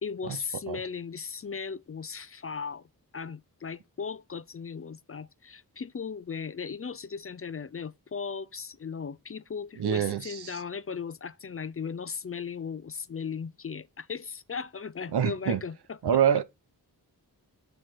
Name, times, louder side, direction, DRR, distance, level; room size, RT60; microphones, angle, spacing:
voice 1, 0.0-2.9 3.1-16.2, left 6 dB, 35° left, 0.4 m, -37 dB
voice 2, 9.8-10.6 15.1-15.6 16.0-16.4, right 8 dB, 85° right, 0.7 m, -25 dB
9.4 x 3.2 x 4.2 m
wide cardioid pair, 65°, 39 cm